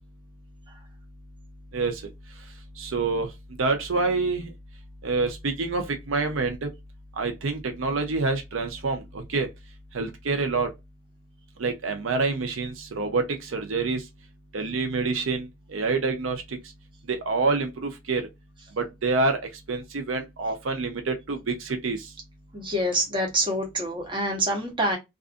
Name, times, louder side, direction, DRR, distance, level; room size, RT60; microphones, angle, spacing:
voice 1, 2.8-3.3 3.6-4.5 5.0-6.7 7.2-9.5 9.9-10.7 11.6-14.0 14.5-16.6 17.1-18.2 18.8-19.4 19.7-22.1, right 3 dB, 75° right, 0.6 m, -27 dB
voice 2, 22.5-25.0, right 1 dB, 25° right, 0.8 m, -26 dB
2.4 x 2.4 x 2.4 m
head